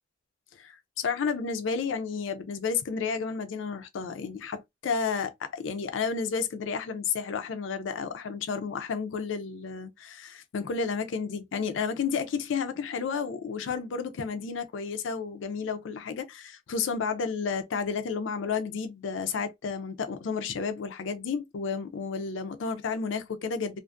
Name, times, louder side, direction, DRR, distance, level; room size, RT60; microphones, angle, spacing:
voice 1, 0.5-23.8, left 5 dB, 75° left, 0.4 m, -31 dB
2.4 x 2.3 x 2.5 m
head